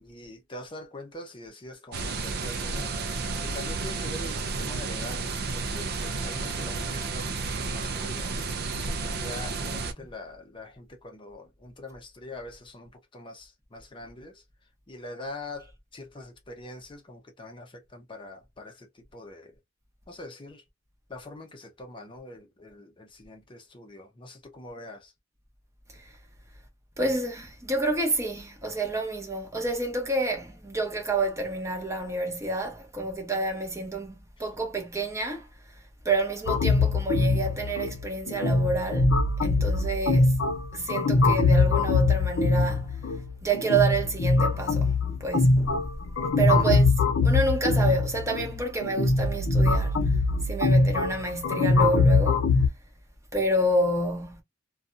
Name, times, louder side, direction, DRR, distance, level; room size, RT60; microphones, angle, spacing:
voice 1, 0.0-2.9 3.4-8.5 9.0-14.4 14.9-19.5 20.1-20.6 21.1-25.1 46.5-46.9, left 1 dB, 25° left, 0.6 m, -43 dB
sound 1, 1.9-9.9, right 4 dB, 50° right, 0.4 m, -32 dB
voice 2, 27.0-35.5 36.0-40.4 40.7-43.0 43.4-44.9 45.2-45.8 46.4-46.9 47.2-50.2 50.4-52.4 53.3-54.4, right 2 dB, 15° right, 0.7 m, -29 dB
sound 2, 36.5-52.7, left 3 dB, 75° left, 0.5 m, -23 dB
2.7 x 2.3 x 2.4 m
head